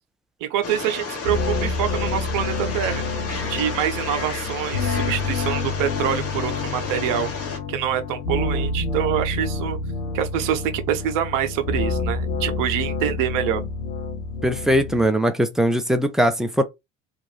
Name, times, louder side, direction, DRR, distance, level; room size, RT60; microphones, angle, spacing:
voice 1, 0.4-3.0 3.5-7.3 7.7-9.8 10.1-13.6, right 10 dB, 55° right, 0.7 m, -25 dB
sound 1, 0.6-7.6, left 4 dB, 35° left, 1.0 m, -32 dB
sound 2, 1.2-15.1, left 3 dB, 85° left, 0.7 m, -28 dB
voice 2, 14.4-16.6, equal, ahead, 0.4 m, -20 dB
2.5 x 2.3 x 3.3 m
hypercardioid pair, 65°, 39 cm